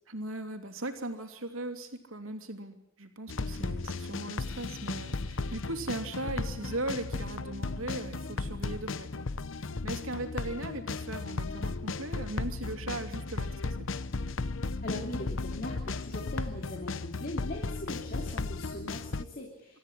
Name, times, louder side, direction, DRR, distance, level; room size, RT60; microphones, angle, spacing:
voice 1, 0.1-9.3 9.6-13.8, right 2 dB, 85° right, 6 dB, 2.9 m, -38 dB
sound 1, 3.3-19.2, left 3 dB, 70° left, 0.8 m, -35 dB
voice 2, 14.8-19.8, left 1 dB, 45° left, -1 dB, 3.1 m, -40 dB
25.5 x 14.0 x 9.9 m, 0.79 s
head